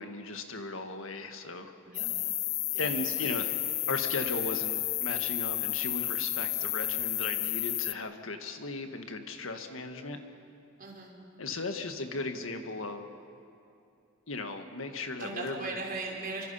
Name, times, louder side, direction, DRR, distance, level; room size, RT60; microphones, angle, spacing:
voice 1, 0.0-1.7 2.8-3.5 3.9-10.2 11.4-13.1 14.3-15.8, left 3 dB, 80° left, 6 dB, 1.7 m, -36 dB
sound 1, 1.9-7.9, left 15 dB, 50° left, 0.6 m, -31 dB
voice 2, 2.7-3.1 10.8-11.1 15.2-16.4, right 3 dB, 45° right, -2 dB, 4.4 m, -38 dB
26.5 x 24.5 x 5.7 m, 2.7 s
head